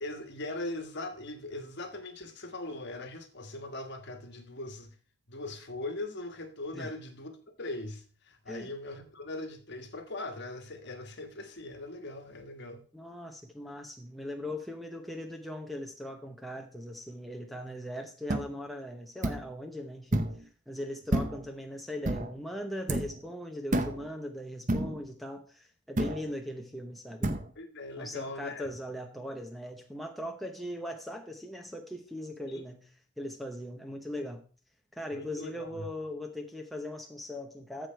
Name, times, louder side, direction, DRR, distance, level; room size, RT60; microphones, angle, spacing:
voice 1, 0.0-4.9 5.3-12.8 27.5-28.7 32.5-32.7 35.1-35.9, left 2 dB, 50° left, 1.4 m, -40 dB
voice 2, 12.9-27.3 28.0-34.4 34.9-37.9, left 1 dB, ahead, 0.8 m, -40 dB
sound 1, 18.3-18.5 19.2-19.5 20.1-20.4 21.1-21.5 22.1-22.3 22.9-23.2 23.7-24.1 24.7-25.0 26.0-26.3 27.2-27.5, right 1 dB, 35° right, 0.8 m, -29 dB
14.0 x 5.0 x 4.6 m
head